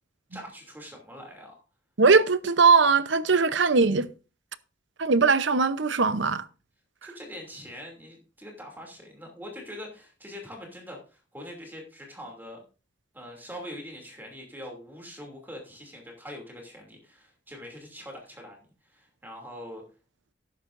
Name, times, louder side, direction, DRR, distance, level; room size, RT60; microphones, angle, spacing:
voice 1, 0.3-1.5 7.0-12.6 13.1-19.8, equal, 10° right, 2.7 m, -43 dB
voice 2, 2.0-4.1 5.0-6.4, right 4 dB, 75° right, 0.8 m, -20 dB
13.0 x 11.0 x 2.6 m
head